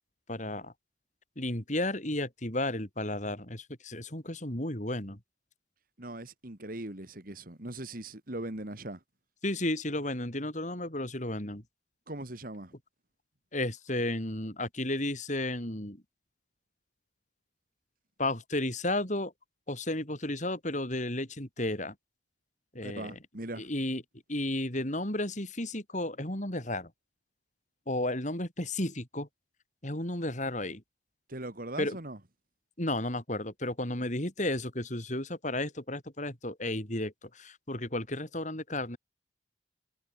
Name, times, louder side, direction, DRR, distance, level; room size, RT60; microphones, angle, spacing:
voice 1, 0.3-0.7 1.4-5.2 9.4-11.6 13.5-16.0 18.2-19.3 19.7-21.9 22.7-23.2 23.6-24.0 24.3-26.9 27.9-29.3 29.8-30.8 31.8-32.0 32.8-39.0, left 1 dB, 40° left, 5.1 m, -33 dB
voice 2, 6.0-9.0 12.1-12.7 22.8-23.7 31.3-32.2, right 1 dB, 50° right, 2.6 m, -40 dB
head